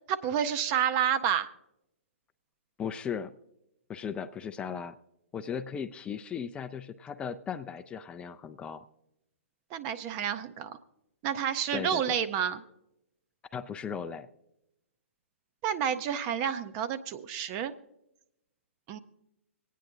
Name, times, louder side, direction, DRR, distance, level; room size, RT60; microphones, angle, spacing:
voice 1, 0.1-1.5 9.7-10.8 11.2-12.6 15.6-17.7 18.9-19.0, right 9 dB, 35° right, 10 dB, 0.5 m, -29 dB
voice 2, 2.8-3.3 3.9-5.0 5.3-8.8 11.7-12.2 13.5-14.3, left 7 dB, 15° left, 10 dB, 0.3 m, -37 dB
26.5 x 9.2 x 2.5 m, 0.86 s
figure-of-eight pair, 120°, 7 cm